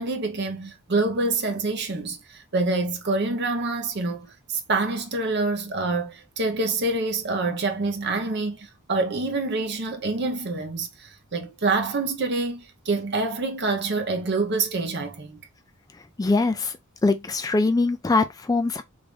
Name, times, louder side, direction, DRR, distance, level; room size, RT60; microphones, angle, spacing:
voice 1, 0.0-15.4, right 3 dB, 50° right, 0.8 m, -26 dB
voice 2, 16.2-16.7 17.0-18.8, left 3 dB, 15° left, 0.3 m, -22 dB
3.5 x 2.5 x 3.3 m
head